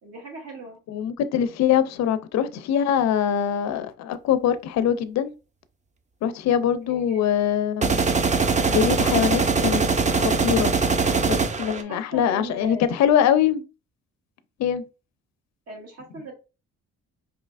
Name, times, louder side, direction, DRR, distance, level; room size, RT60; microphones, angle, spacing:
voice 1, 0.0-0.8 6.9-7.3 11.7-12.9 15.7-16.3, right 1 dB, 55° right, 1.8 m, -39 dB
voice 2, 0.9-5.3 6.2-8.0 8.7-9.8 10.1-10.7 11.3-13.6 14.6-14.8, left 9 dB, 65° left, 0.5 m, -23 dB
sound 1, 7.8-11.8, right 4 dB, 25° right, 0.5 m, -22 dB
4.8 x 2.8 x 2.4 m
cardioid pair, 90°, 30 cm